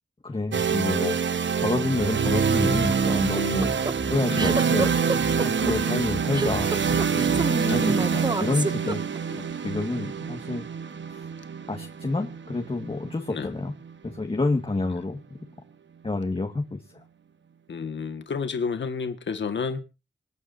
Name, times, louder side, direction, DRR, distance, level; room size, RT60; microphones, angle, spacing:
voice 1, 0.2-3.7 4.1-4.9 5.4-9.3 9.6-10.7 11.1-11.2 11.7-13.7 14.0-15.4 16.0-16.8, left 3 dB, 30° left, 2.0 m, -29 dB
sound 1, 0.5-14.4, right 6 dB, 85° right, 1.3 m, -26 dB
sound 2, 2.0-7.5, equal, ahead, 2.5 m, -39 dB
sound 3, 3.1-9.4, right 3 dB, 25° right, 0.7 m, -28 dB
voice 2, 17.7-19.8, left 5 dB, 85° left, 1.9 m, -31 dB
26.5 x 9.2 x 2.8 m
wide cardioid pair, 95°, 19 cm